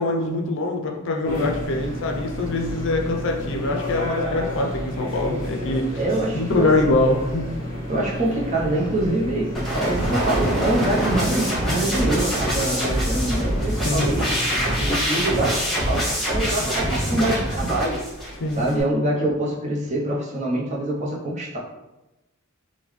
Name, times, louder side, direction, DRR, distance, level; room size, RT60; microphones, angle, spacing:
voice 1, 0.0-6.0 6.3-7.5 13.8-14.1 18.4-18.6, left 2 dB, 60° left, 2 dB, 0.5 m, -23 dB
sound 1, 1.2-14.8, equal, 40° left, 0.9 m, -31 dB
voice 2, 6.0-6.8 7.9-14.3 14.8-18.0 18.6-21.6, right 1 dB, 35° right, -3 dB, 0.7 m, -25 dB
sound 2, 9.5-18.8, equal, ahead, 1.1 m, -24 dB
3.7 x 2.2 x 3.1 m, 0.98 s
head